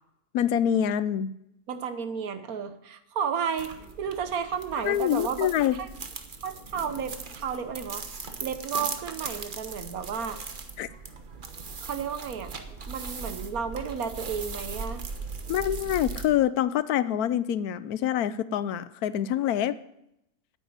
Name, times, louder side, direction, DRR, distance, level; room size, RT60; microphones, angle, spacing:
voice 1, 0.3-1.3 4.8-5.8 10.8-10.9 15.5-19.8, left 10 dB, 80° left, 15 dB, 1.1 m, -26 dB
voice 2, 1.7-5.9 6.4-8.0 8.4-10.4 11.8-12.5 12.8-15.0, right 7 dB, 70° right, 10 dB, 1.4 m, -32 dB
sound 1, 3.6-16.3, right 4 dB, 40° right, 1.1 m, -39 dB
9.2 x 8.1 x 9.4 m, 0.82 s
omnidirectional pair, 1.6 m